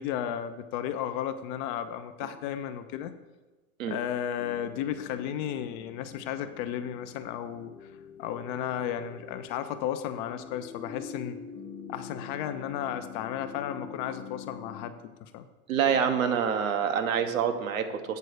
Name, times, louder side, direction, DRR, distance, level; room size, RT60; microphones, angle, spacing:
voice 1, 0.0-3.1 3.8-7.9 8.2-11.4 11.9-15.5, left 10 dB, 35° left, 10 dB, 0.5 m, -34 dB
sound 1, 4.4-14.9, left 6 dB, 75° left, 1.0 m, -45 dB
voice 2, 15.7-18.2, right 7 dB, 70° right, 7 dB, 1.1 m, -26 dB
8.0 x 4.1 x 6.3 m, 1.2 s
hypercardioid pair, 100°, 43 cm